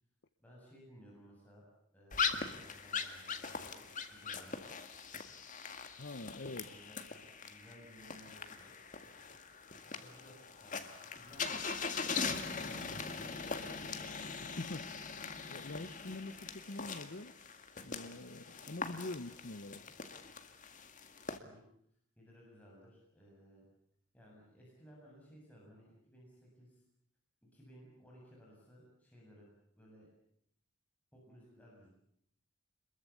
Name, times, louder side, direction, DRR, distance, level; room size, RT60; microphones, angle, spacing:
voice 1, 0.4-1.7 1.9-3.8 4.1-4.6 6.6-8.7 10.0-11.6 12.3-14.0 21.3-21.6 22.2-23.6 24.1-26.8 27.4-29.5 29.8-30.1 31.1-31.9, equal, 5° left, -4 dB, 7.3 m, -59 dB
sound 1, 2.1-21.4, left 5 dB, 35° left, 2.0 m, -41 dB
voice 2, 6.0-6.7 14.4-15.0 15.5-17.4 17.8-19.8, left 2 dB, 50° left, 9 dB, 1.0 m, -45 dB
27.0 x 22.0 x 8.5 m, 0.71 s
head